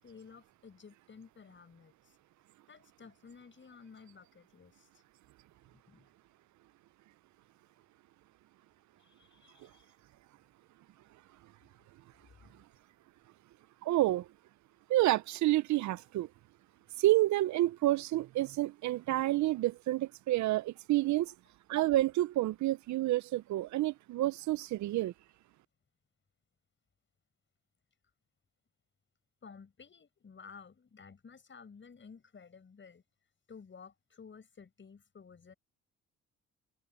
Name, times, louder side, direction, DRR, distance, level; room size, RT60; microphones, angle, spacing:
voice 1, 0.0-2.2 2.7-5.0 5.7-6.1 9.0-10.0 12.4-12.5 21.3-21.4 29.4-33.0 33.5-35.5, left 5 dB, 40° left, 8.0 m, -54 dB
voice 2, 13.8-14.3 14.9-16.3 17.0-21.3 21.7-25.1, right 16 dB, 70° right, 0.5 m, -29 dB
cardioid pair, 90°, 30 cm